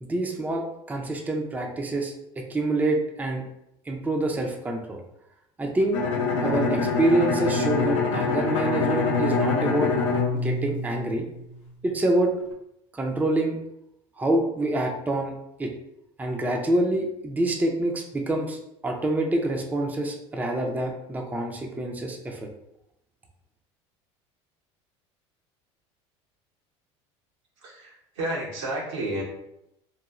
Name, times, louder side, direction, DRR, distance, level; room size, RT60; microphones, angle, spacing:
voice 1, 0.0-3.4 3.9-5.0 5.6-6.0 6.4-9.9 10.3-11.2 11.8-12.3 12.9-13.6 14.2-15.3 15.6-15.7 16.2-18.6 18.8-22.4, right 1 dB, 10° right, 1 dB, 0.4 m, -26 dB
Bowed string instrument, 5.9-11.6, left 4 dB, 90° left, 0.4 m, -25 dB
voice 2, 27.6-29.2, right 1 dB, 85° right, -4 dB, 1.0 m, -31 dB
3.0 x 2.2 x 2.4 m, 0.83 s
hypercardioid pair, 80°, 15 cm